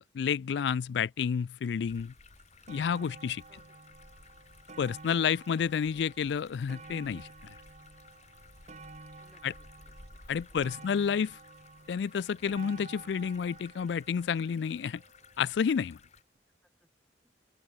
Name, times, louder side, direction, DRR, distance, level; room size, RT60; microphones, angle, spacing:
voice 1, 0.0-2.1 2.7-3.4 4.8-7.3 9.4-9.5 10.3-11.4 11.9-15.0 15.4-16.0, left 7 dB, 70° left, 0.3 m, -30 dB
sound 1, 1.8-16.2, left 3 dB, 40° left, 3.4 m, -56 dB
sound 2, 2.0-2.1 2.4-15.6 16.4-16.5, right 3 dB, 40° right, 1.5 m, -51 dB
voice 2, 3.5-3.9 9.2-10.2 10.5-10.9 16.8-16.9 17.2-17.3, equal, ahead, 3.2 m, -67 dB
open air
head